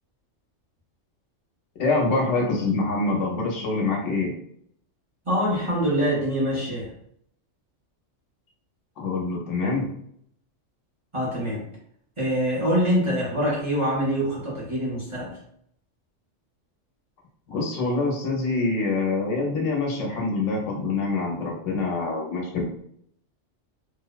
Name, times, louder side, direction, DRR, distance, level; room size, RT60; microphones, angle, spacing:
voice 1, 1.8-4.3 9.0-9.9 17.5-22.7, left 3 dB, 85° left, -1 dB, 1.1 m, -25 dB
voice 2, 5.2-6.9 11.1-11.6 12.2-15.4, equal, 30° right, -7 dB, 0.7 m, -24 dB
2.7 x 2.0 x 2.3 m, 0.67 s
omnidirectional pair, 1.3 m